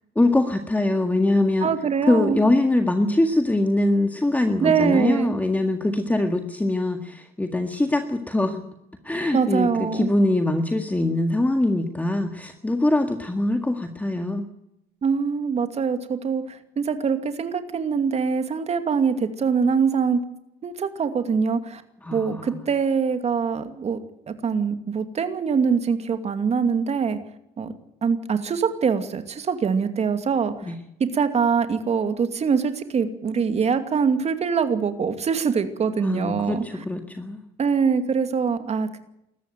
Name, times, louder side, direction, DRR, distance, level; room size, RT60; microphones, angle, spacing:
voice 1, 0.2-1.7 2.1-8.6 9.0-14.4 22.0-22.5 30.6-30.8 36.0-37.4, left 2 dB, 10° left, 6 dB, 1.9 m, -23 dB
voice 2, 1.6-2.4 4.6-5.3 9.3-10.1 15.0-20.2 20.6-21.8 22.1-24.0 24.3-27.2 27.6-27.7 28.0-30.7 31.1-36.8 37.6-39.0, right 6 dB, 40° right, 9 dB, 2.5 m, -23 dB
20.0 x 14.5 x 9.2 m, 0.82 s
cardioid pair, 110°, 17 cm